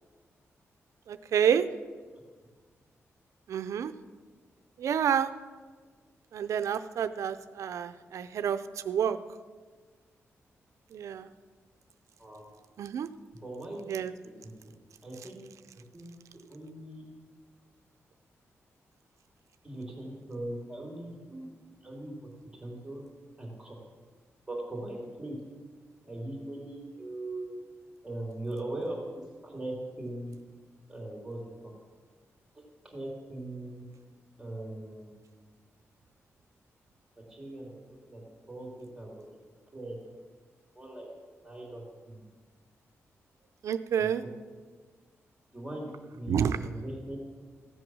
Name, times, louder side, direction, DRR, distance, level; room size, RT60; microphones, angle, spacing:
voice 1, 1.1-1.6 3.5-3.9 4.8-5.3 6.3-8.6 8.9-9.2 10.9-11.3 12.8-13.1 13.9-14.1 43.6-44.2 46.3-46.6, right 8 dB, 85° right, 11 dB, 0.5 m, -28 dB
voice 2, 13.4-13.8 15.0-15.4 15.7-16.1 16.5-17.0 19.6-21.4 21.8-22.3 22.6-23.0 23.4-23.7 24.5-25.4 26.0-27.6 28.0-30.3 30.9-31.7 32.9-33.8 34.4-35.1 37.3-37.8 38.1-39.3 39.7-40.0 40.7-41.1 41.4-42.2 44.0-44.3 45.5-47.2, right 1 dB, 10° right, -3 dB, 2.8 m, -40 dB
15.0 x 7.9 x 6.2 m, 1.5 s
wide cardioid pair, 125°, 5 cm